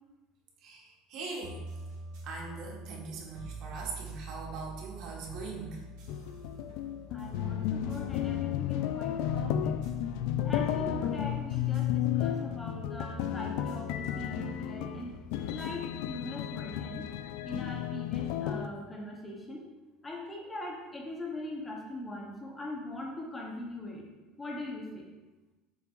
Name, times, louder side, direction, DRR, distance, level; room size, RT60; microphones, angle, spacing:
voice 1, 0.6-1.6 2.2-5.8, right 3 dB, 45° right, -1 dB, 1.3 m, -41 dB
sound 1, 1.4-16.7, right 2 dB, 60° right, 1.7 m, -47 dB
sound 2, 6.1-18.7, left 10 dB, 65° left, 0.3 m, -33 dB
voice 2, 7.1-9.8 10.4-15.2 15.5-17.1 17.4-19.6 20.0-24.1 24.4-25.0, left 1 dB, 10° left, -1 dB, 0.8 m, -41 dB
7.5 x 5.7 x 2.4 m, 1.2 s
cardioid pair, 160°, 0 cm